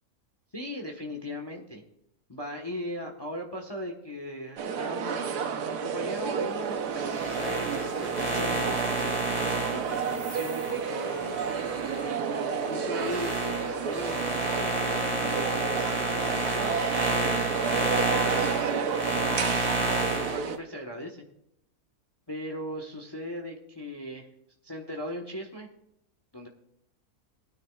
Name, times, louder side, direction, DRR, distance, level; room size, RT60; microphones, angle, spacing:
voice 1, 0.5-1.8 2.3-5.3 5.7-11.5 12.0-13.4 13.6-16.8 17.6-19.5 20.1-21.2 22.3-24.3 24.6-25.7 26.3-26.5, equal, 20° left, 2 dB, 1.1 m, -38 dB
sound 1, 4.6-20.6, right 6 dB, 90° right, 1.4 m, -31 dB
sound 2, 6.7-18.8, right 2 dB, 60° right, 1.5 m, -43 dB
sound 3, 7.0-12.1 12.5-20.4, right 2 dB, 25° right, 2.7 m, -30 dB
19.5 x 9.6 x 2.4 m, 0.79 s
omnidirectional pair, 1.6 m